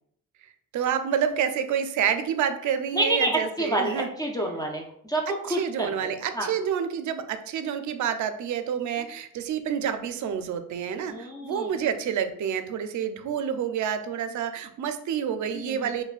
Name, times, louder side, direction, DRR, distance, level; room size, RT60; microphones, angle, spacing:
voice 1, 0.7-4.1 5.3-16.0, right 8 dB, 65° right, 9 dB, 0.4 m, -28 dB
voice 2, 2.9-3.3 3.6-5.2 5.5-6.1 6.4-6.5 11.1-11.7 15.5-15.8, right 1 dB, 10° left, -1 dB, 0.3 m, -28 dB
5.5 x 2.2 x 2.3 m, 0.69 s
cardioid pair, 140°, 33 cm